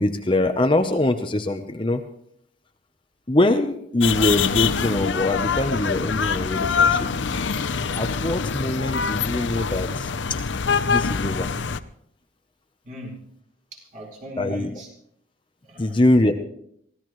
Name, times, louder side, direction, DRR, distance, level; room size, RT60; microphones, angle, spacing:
voice 1, 0.0-2.0 3.3-7.1 8.0-10.1 10.9-11.5 14.4-14.7 15.8-16.3, left 1 dB, 25° left, 6 dB, 0.8 m, -23 dB
sound 1, 4.0-11.8, left 6 dB, 70° left, 0.6 m, -24 dB
Bass guitar, 6.8-11.2, left 1 dB, 85° left, 2.1 m, -43 dB
voice 2, 12.8-13.3 13.7-14.9 15.6-16.0, left 1 dB, 40° right, -1 dB, 4.7 m, -39 dB
24.0 x 16.0 x 3.1 m, 0.69 s
head